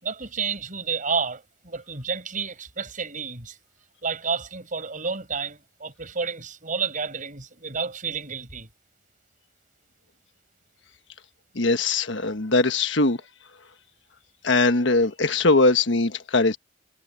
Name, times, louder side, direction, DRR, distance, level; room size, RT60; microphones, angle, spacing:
voice 1, 0.0-3.6 4.0-8.7, right 5 dB, 45° right, 5.6 m, -30 dB
voice 2, 11.5-13.2 14.4-16.6, left 3 dB, 70° left, 1.4 m, -21 dB
head